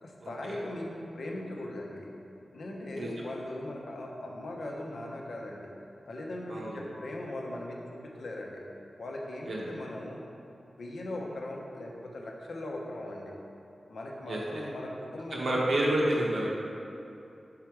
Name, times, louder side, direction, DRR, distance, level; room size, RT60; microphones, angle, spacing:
voice 1, 0.0-2.1 2.5-5.7 6.1-8.6 9.0-10.2 10.8-13.4 13.9-15.7, left 1 dB, 75° left, -1 dB, 0.8 m, -39 dB
voice 2, 15.3-16.6, right 1 dB, 65° right, -4 dB, 1.2 m, -28 dB
5.7 x 5.0 x 4.7 m, 2.7 s
wide cardioid pair, 135°, 0 cm